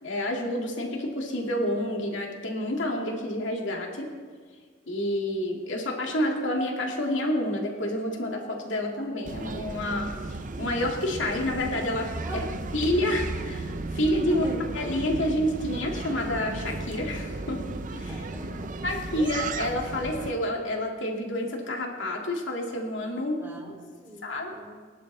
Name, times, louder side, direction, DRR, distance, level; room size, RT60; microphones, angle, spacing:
voice 1, 0.0-4.1 4.9-10.1 10.6-12.4 12.7-14.5 14.7-17.6 17.9-18.2 18.8-23.4 24.2-24.5, left 1 dB, 70° left, 0 dB, 2.3 m, -29 dB
sound 1, 9.2-20.3, right 3 dB, 45° right, 0.7 m, -35 dB
voice 2, 13.9-14.7 18.1-18.7 23.4-24.8, right 1 dB, 10° right, -4 dB, 3.8 m, -39 dB
24.0 x 11.0 x 3.3 m, 1.6 s
head